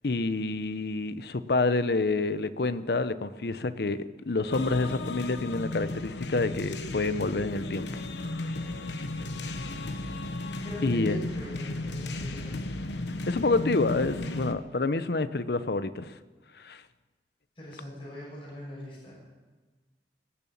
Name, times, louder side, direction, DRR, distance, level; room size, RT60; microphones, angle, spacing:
voice 1, 0.0-8.5 10.8-11.2 13.3-16.1 16.5-16.8, left 3 dB, 60° left, 13 dB, 0.7 m, -28 dB
sound 1, 4.5-14.5, left 2 dB, 85° left, 1.0 m, -34 dB
voice 2, 10.6-12.6 17.6-19.1, left 1 dB, 30° left, -5 dB, 5.9 m, -41 dB
19.5 x 7.1 x 8.7 m, 1.3 s
head